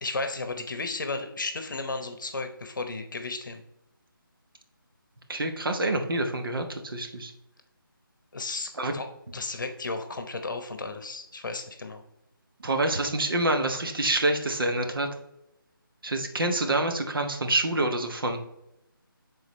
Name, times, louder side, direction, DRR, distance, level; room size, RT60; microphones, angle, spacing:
voice 1, 0.0-3.6 8.3-9.0 9.3-12.0, left 3 dB, 60° left, 7 dB, 0.9 m, -34 dB
voice 2, 5.3-7.3 8.8-8.9 12.6-15.1 16.0-18.4, right 2 dB, 70° right, 5 dB, 1.1 m, -27 dB
9.5 x 3.9 x 3.1 m, 0.85 s
figure-of-eight pair, 170°, 12 cm